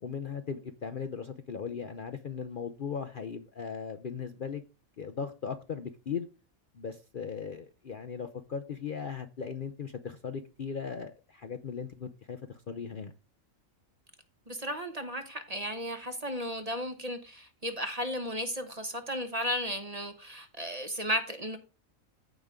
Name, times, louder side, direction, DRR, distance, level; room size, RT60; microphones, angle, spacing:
voice 1, 0.0-4.6 5.0-6.3 6.7-13.1, left 6 dB, 50° left, 0.7 m, -38 dB
voice 2, 14.5-21.6, equal, 30° right, 1.0 m, -34 dB
14.5 x 5.2 x 3.6 m
omnidirectional pair, 1.4 m